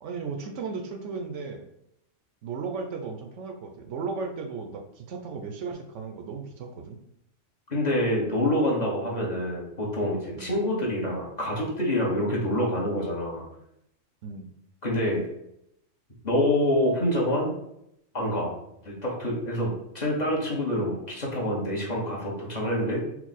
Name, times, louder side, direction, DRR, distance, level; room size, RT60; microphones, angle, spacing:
voice 1, 0.0-1.6 2.4-7.0 9.2-9.4 10.4-10.6 14.2-14.5, right 4 dB, 75° right, 5 dB, 0.9 m, -35 dB
voice 2, 7.7-13.4 14.8-15.3 16.2-17.6 18.1-18.5 18.8-23.0, left 1 dB, 35° left, -4 dB, 1.0 m, -26 dB
4.5 x 2.1 x 4.0 m, 0.78 s
omnidirectional pair, 1.3 m